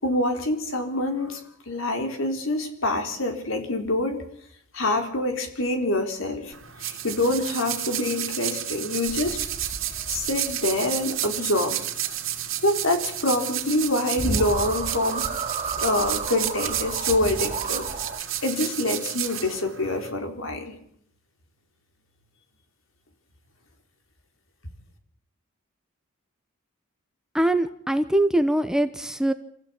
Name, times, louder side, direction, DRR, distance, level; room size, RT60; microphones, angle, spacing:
voice 1, 0.0-4.2 4.7-6.5 6.8-9.5 10.1-11.9 12.6-15.3 15.8-17.9 18.4-20.8, left 1 dB, 70° left, 5 dB, 4.2 m, -26 dB
sound 1, 6.5-20.1, right 12 dB, 75° right, 2.9 m, -31 dB
sound 2, 9.1-10.7 13.8-13.9 14.2-18.2, right 3 dB, 30° right, 2.5 m, -32 dB
voice 2, 27.3-29.3, right 1 dB, 5° right, 9 dB, 1.0 m, -22 dB
26.5 x 15.5 x 8.7 m, 0.69 s
head